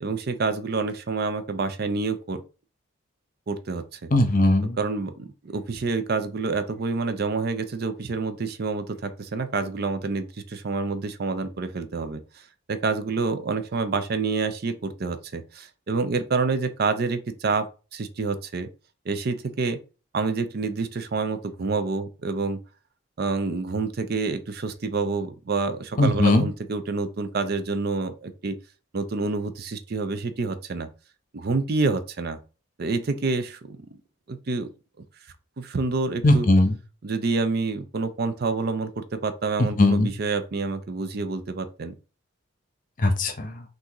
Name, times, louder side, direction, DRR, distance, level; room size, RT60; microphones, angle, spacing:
voice 1, 0.0-2.4 3.5-4.1 4.8-18.7 19.1-19.8 20.1-22.6 23.2-28.6 28.9-30.9 31.3-32.4 32.8-34.0 34.3-34.7 35.6-36.5 37.0-41.9, right 4 dB, 50° right, 0.5 m, -28 dB
voice 2, 4.1-4.8 26.0-26.5 36.2-36.8 39.8-40.1 43.0-43.6, left 2 dB, 40° left, 0.7 m, -19 dB
5.9 x 2.6 x 3.0 m
head